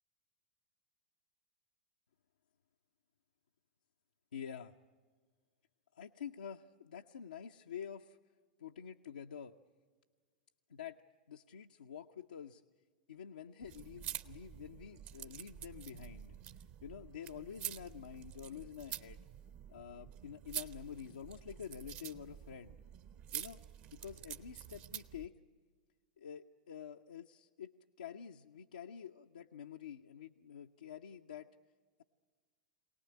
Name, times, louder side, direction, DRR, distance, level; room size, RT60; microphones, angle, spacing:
voice 1, 4.3-4.8 5.9-8.2 8.6-9.5 10.7-11.0 11.3-12.6 13.1-16.4 16.8-19.2 19.7-22.8 23.3-23.6 23.9-25.4 26.2-31.5, left 8 dB, 70° left, 3 dB, 0.6 m, -48 dB
sound 1, 13.6-25.3, right 10 dB, 40° right, 0.8 m, -48 dB
24.0 x 18.5 x 8.7 m, 1.5 s
figure-of-eight pair, 90°, 4 cm